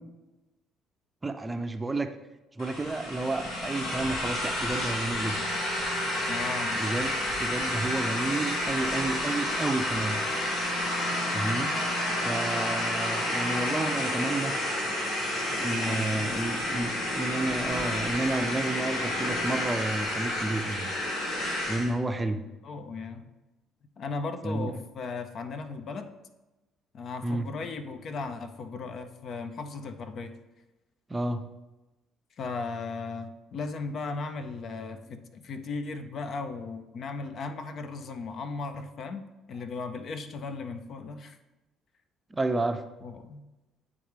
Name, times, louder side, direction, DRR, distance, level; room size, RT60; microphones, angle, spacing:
voice 1, 1.2-2.1 2.6-5.4 6.8-7.1 7.4-10.2 11.3-11.8 12.2-14.5 15.5-20.9 21.7-22.4 24.4-24.7 27.2-27.5 31.1-31.4 42.3-42.8, right 2 dB, 20° right, 8 dB, 0.5 m, -31 dB
sound 1, 2.6-21.9, left 1 dB, 80° left, 1.6 m, -30 dB
voice 2, 6.3-6.8 15.7-16.5 16.8-17.0 22.6-23.3 24.0-26.1 26.9-30.3 32.4-41.4 43.0-43.4, left 4 dB, 55° left, 8 dB, 0.5 m, -37 dB
9.2 x 3.6 x 3.3 m, 1.1 s
supercardioid pair, 75°, 0 cm